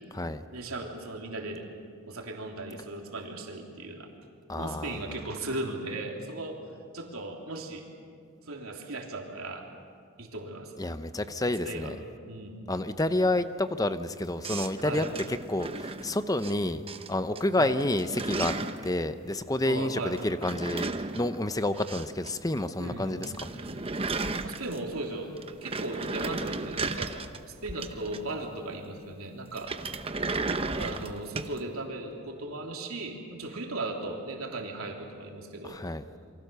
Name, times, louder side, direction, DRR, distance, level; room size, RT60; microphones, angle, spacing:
voice 1, 0.5-1.7 2.1-4.1 4.5-6.6 6.9-7.9 8.5-9.7 10.2-10.7 11.6-11.9 12.2-12.6 14.8-15.0 17.6-17.7 19.6-20.2 22.8-23.2 23.5-23.8 24.4-27.1 27.6-29.7 30.8-35.8, right 2 dB, 85° right, 1 dB, 3.2 m, -37 dB
voice 2, 4.5-5.0 10.8-11.9 12.7-18.5 18.8-23.5 35.6-36.1, left 1 dB, 15° left, 11 dB, 0.8 m, -29 dB
sound 1, 14.4-16.5 16.9-17.4 17.7-18.9 20.2-22.3 22.6-22.7 23.0-23.1 23.2-25.0 25.4-28.5 29.5-31.6, right 3 dB, 25° right, 0.9 m, -34 dB
28.0 x 23.5 x 6.9 m, 2.3 s
head